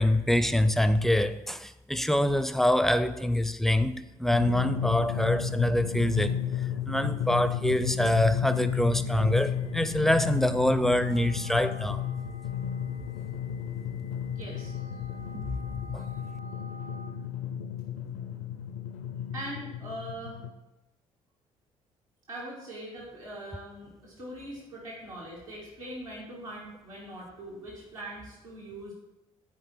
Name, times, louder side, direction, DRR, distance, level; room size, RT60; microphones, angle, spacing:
voice 1, 0.0-6.3 6.9-12.0 15.3-15.5 15.9-16.1, left 1 dB, ahead, 0.5 m, -25 dB
Drum, 4.3-20.5, left 8 dB, 65° left, 0.6 m, -33 dB
sound 1, 8.4-17.1, right 3 dB, 55° right, 1.3 m, -51 dB
voice 2, 14.3-15.0 16.0-16.1 19.3-20.4 22.3-28.9, right 1 dB, 80° right, 2.1 m, -42 dB
11.5 x 5.0 x 4.5 m
figure-of-eight pair, 50°, 17 cm